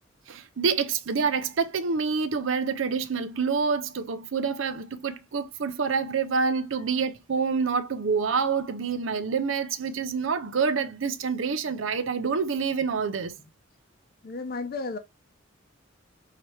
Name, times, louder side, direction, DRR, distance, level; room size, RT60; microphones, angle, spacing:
voice 1, 0.3-13.3, right 5 dB, 75° right, 0.6 m, -27 dB
voice 2, 14.2-15.0, left 3 dB, 50° left, 0.6 m, -33 dB
5.8 x 2.9 x 3.1 m
head